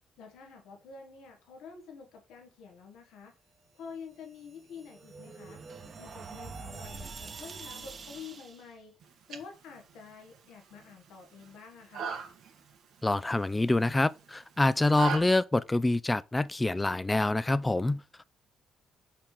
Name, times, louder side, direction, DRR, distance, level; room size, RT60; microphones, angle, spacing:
voice 1, 0.2-3.3 3.7-5.6 5.9-8.9 9.3-12.1, left 5 dB, 90° left, 1.6 m, -48 dB
sound 1, 4.2-8.7, right 4 dB, 45° right, 1.1 m, -45 dB
sound 2, 9.0-15.2, right 7 dB, 75° right, 1.7 m, -41 dB
voice 2, 13.0-18.0, left 2 dB, 15° left, 0.4 m, -26 dB
5.8 x 5.0 x 4.5 m
cardioid pair, 90°, 0 cm